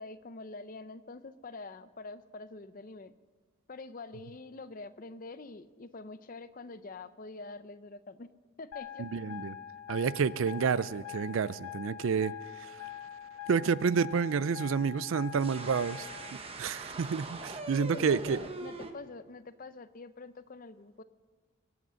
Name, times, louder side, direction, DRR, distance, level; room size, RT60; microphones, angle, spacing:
voice 1, 0.0-3.1 3.7-8.3 8.6-9.1 17.8-21.0, left 3 dB, 40° left, 0.5 m, -45 dB
sound 1, 8.7-16.3, left 11 dB, 85° left, 0.9 m, -44 dB
voice 2, 9.0-9.5 9.9-12.8 13.5-16.1 16.6-18.4, right 6 dB, 70° right, 0.4 m, -29 dB
sound 2, 15.3-18.9, right 2 dB, 25° right, 0.9 m, -42 dB
22.5 x 8.1 x 6.3 m
head